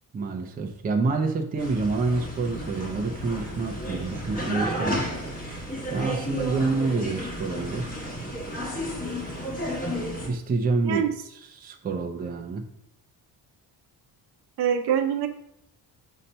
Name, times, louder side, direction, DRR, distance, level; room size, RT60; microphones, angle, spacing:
voice 1, 0.1-5.4 5.9-7.9 10.2-12.6, right 3 dB, 20° right, 3 dB, 0.5 m, -28 dB
sound 1, 1.6-10.3, equal, 20° left, 1.1 m, -32 dB
voice 2, 14.6-15.3, right 8 dB, 75° right, 6 dB, 0.9 m, -24 dB
6.4 x 2.8 x 5.4 m, 0.76 s
cardioid pair, 160°, 40 cm